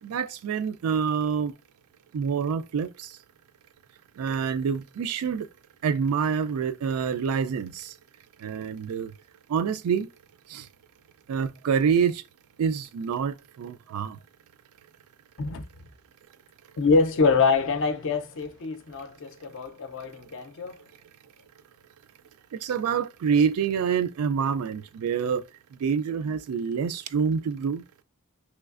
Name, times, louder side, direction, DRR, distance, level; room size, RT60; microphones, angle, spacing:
voice 1, 0.0-1.5 2.1-3.2 4.2-5.5 5.8-7.9 8.4-9.1 9.5-10.1 10.5-10.7 11.3-12.2 12.6-14.2 22.5-25.4 25.8-27.8, right 6 dB, 75° right, 0.3 m, -27 dB
voice 2, 16.8-20.8, left 4 dB, 60° left, 0.5 m, -25 dB
3.2 x 3.1 x 2.4 m
head